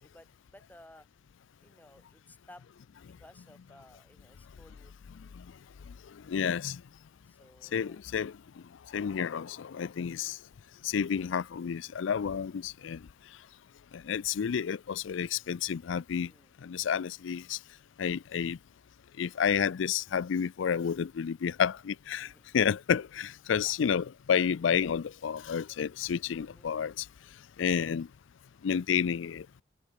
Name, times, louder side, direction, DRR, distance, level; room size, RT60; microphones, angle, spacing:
voice 1, 0.0-1.1 1.6-2.7 3.2-4.9 7.2-8.0 16.1-16.5 22.2-22.5 23.5-23.7 26.4-26.7, left 1 dB, 10° left, 3.2 m, -57 dB
voice 2, 6.3-6.8 7.7-8.4 8.9-10.4 10.8-13.0 13.9-16.3 16.6-17.6 18.0-18.6 19.2-27.1 27.6-28.1 28.6-29.6, left 7 dB, 75° left, 0.4 m, -30 dB
head